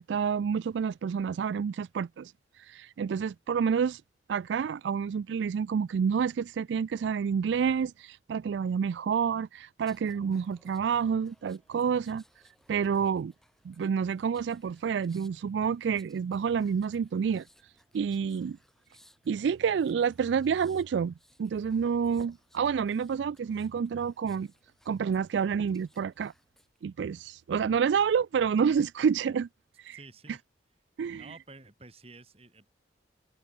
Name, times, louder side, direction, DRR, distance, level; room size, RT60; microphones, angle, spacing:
voice 1, 0.0-2.3 2.6-4.0 4.3-12.2 12.7-13.3 13.6-18.6 19.3-21.1 21.4-24.5 24.9-26.3 26.8-29.5 29.8-30.0 30.3-30.4 31.0-31.3, right 6 dB, 80° right, 0.3 m, -29 dB
sound 1, 9.8-26.8 27.2-27.4, equal, ahead, 7.3 m, -65 dB
voice 2, 29.9-30.4 31.1-32.7, right 2 dB, 35° right, 3.9 m, -51 dB
head